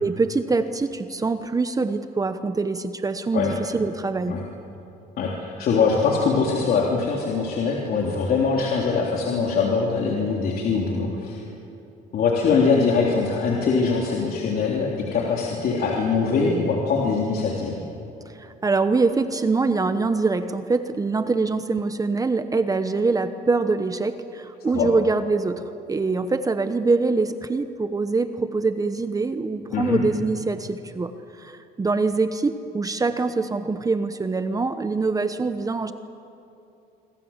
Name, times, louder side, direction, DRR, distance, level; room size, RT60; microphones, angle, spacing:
voice 1, 0.0-4.4 18.3-35.9, right 3 dB, 20° right, 10 dB, 1.0 m, -24 dB
voice 2, 5.2-11.4 12.1-17.8 24.7-24.9 29.7-30.0, left 5 dB, 60° left, -2 dB, 3.4 m, -22 dB
27.0 x 25.0 x 7.3 m, 2.8 s
cardioid pair, 110°, 17 cm